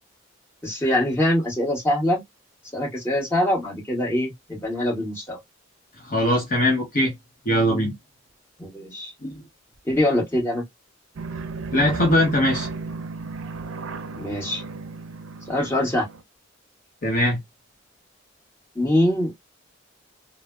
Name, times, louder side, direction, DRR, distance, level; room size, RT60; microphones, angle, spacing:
voice 1, 0.6-2.2 2.7-5.4 8.6-9.1 9.9-10.6 14.2-14.6 15.5-16.1 18.7-19.5, left 1 dB, 10° left, 1.5 m, -23 dB
voice 2, 6.0-7.1 7.4-7.9 9.2-9.4 11.7-12.7 17.0-17.4, left 1 dB, 45° left, 0.9 m, -21 dB
sound 1, 11.2-16.2, right 4 dB, 80° right, 0.4 m, -34 dB
3.1 x 2.1 x 2.2 m
head